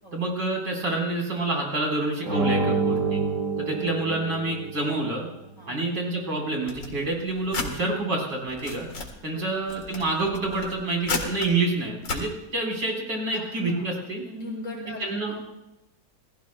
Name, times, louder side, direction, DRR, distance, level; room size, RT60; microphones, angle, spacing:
voice 1, 0.1-3.2 3.6-5.3 5.7-8.9 9.2-14.2 15.0-15.3, right 2 dB, 80° right, 0 dB, 5.0 m, -28 dB
sound 1, 2.2-4.9, right 4 dB, 45° right, 2.0 m, -27 dB
sound 2, 6.7-7.7 8.3-9.1 9.6-11.5 12.0-12.2, left 4 dB, 85° left, 2.8 m, -33 dB
voice 2, 9.1-9.4 13.3-13.9 14.2-15.4, left 1 dB, 45° left, -3 dB, 7.2 m, -39 dB
28.0 x 19.0 x 2.2 m, 0.91 s
omnidirectional pair, 1.9 m